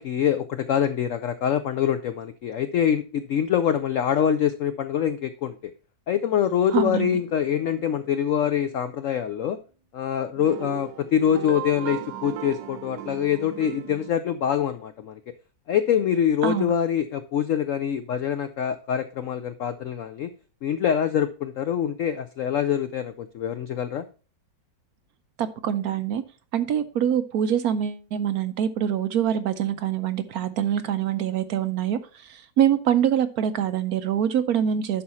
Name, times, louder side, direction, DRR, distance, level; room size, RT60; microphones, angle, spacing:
voice 1, 0.0-5.7 6.1-9.6 9.9-15.2 15.7-20.3 20.6-24.1, left 9 dB, 80° left, 10 dB, 0.7 m, -25 dB
sound 1, 6.5-8.8 10.4-14.1, right 11 dB, 90° right, 1.4 m, -38 dB
voice 2, 6.7-7.2 16.4-16.7 25.4-26.2 26.5-35.0, right 9 dB, 70° right, 11 dB, 1.0 m, -24 dB
11.0 x 4.4 x 4.2 m, 0.36 s
omnidirectional pair, 1.9 m